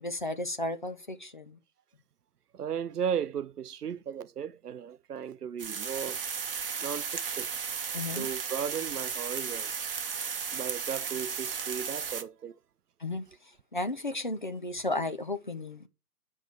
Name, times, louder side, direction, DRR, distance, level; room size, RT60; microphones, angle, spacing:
voice 1, 0.0-1.6 7.9-8.3 13.0-13.2 13.7-15.9, left 2 dB, 35° left, 0.5 m, -34 dB
voice 2, 2.5-6.2 6.8-7.5 8.2-9.9 10.5-12.6, right 8 dB, 75° right, 0.6 m, -36 dB
sound 1, 5.6-12.2, right 6 dB, 35° right, 0.9 m, -35 dB
8.4 x 5.4 x 4.8 m
figure-of-eight pair, 135°, 47 cm